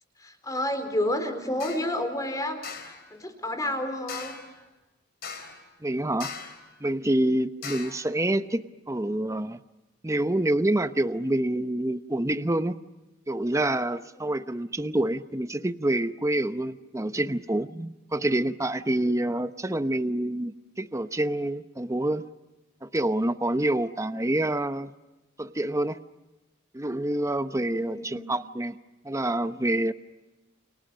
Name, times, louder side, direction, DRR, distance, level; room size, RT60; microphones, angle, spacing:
voice 1, 0.2-2.7 3.1-4.3 14.2-14.3 19.0-19.2 27.5-28.3, left 1 dB, 20° left, 7 dB, 4.0 m, -30 dB
sound 1, 1.6-1.9 2.6-3.0 4.1-4.5 5.2-5.7 6.2-6.7 7.6-8.1, left 6 dB, 55° left, 4.1 m, -39 dB
voice 2, 5.8-6.3 6.8-9.6 10.0-12.8 13.3-22.3 22.8-24.9 25.4-26.0 26.7-28.8 29.0-29.9, right 1 dB, 15° right, 11 dB, 0.8 m, -27 dB
29.0 x 29.0 x 6.4 m, 1.1 s
head